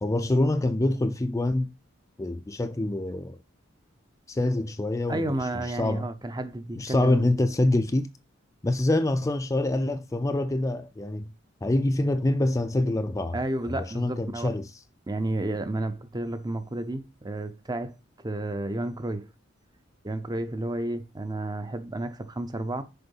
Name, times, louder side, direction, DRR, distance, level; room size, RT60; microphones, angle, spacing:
voice 1, 0.0-1.7 2.2-3.4 4.3-5.3 5.7-6.1 6.8-8.1 8.6-11.3 11.6-13.4 13.7-14.7, left 1 dB, 15° left, 0.4 m, -25 dB
voice 2, 5.1-7.4 13.3-14.5 15.1-18.0 18.2-19.3 20.0-22.8, right 1 dB, 20° right, 0.6 m, -31 dB
6.7 x 4.5 x 5.5 m
head